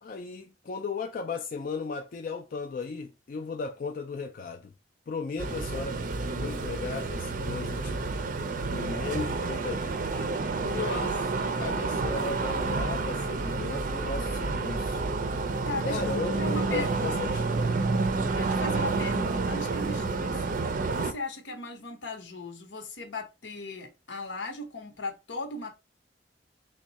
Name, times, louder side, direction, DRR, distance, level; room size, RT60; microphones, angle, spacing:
voice 1, 0.0-4.7 5.1-8.0 8.7-10.3 10.6-11.3 11.6-15.0 15.8-17.7, left 4 dB, 50° left, 0.3 m, -36 dB
sound 1, 5.4-21.1, right 3 dB, 45° right, 0.4 m, -29 dB
voice 2, 10.7-11.1 11.4-11.6 15.6-17.4 18.3-25.7, left 2 dB, 85° left, 0.9 m, -38 dB
3.6 x 2.2 x 4.0 m
head